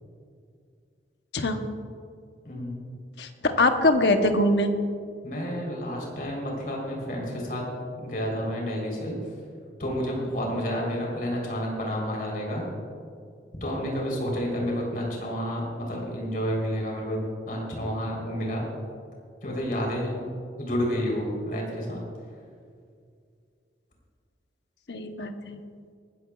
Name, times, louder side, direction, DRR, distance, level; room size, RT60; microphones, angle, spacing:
voice 1, 2.4-2.8 5.2-7.6 8.0-9.1 9.8-12.6 13.6-17.2 17.4-18.6 19.4-20.2 20.6-22.0, equal, 50° left, -2 dB, 3.8 m, -30 dB
voice 2, 3.2-4.7 24.9-25.6, left 2 dB, 70° left, 6 dB, 1.0 m, -23 dB
20.0 x 14.0 x 2.4 m, 2.2 s
head